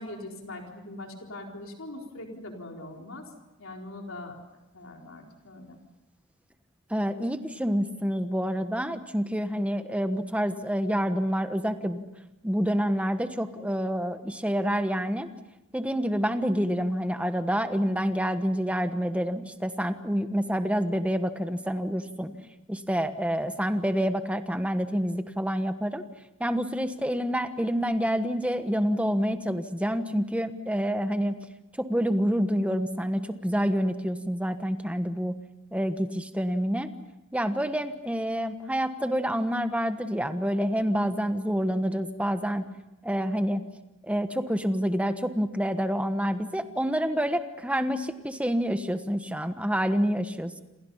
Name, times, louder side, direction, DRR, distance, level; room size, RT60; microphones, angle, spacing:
voice 1, 0.0-3.2 3.6-4.4 4.7-5.8, left 2 dB, 65° left, 1 dB, 4.3 m, -41 dB
voice 2, 6.9-12.0 12.4-15.3 15.7-22.3 22.7-26.0 26.4-31.4 31.8-35.3 35.7-36.9 37.3-42.7 43.0-43.7 44.0-50.6, equal, 5° right, 8 dB, 1.2 m, -27 dB
28.0 x 27.5 x 5.7 m, 0.96 s
head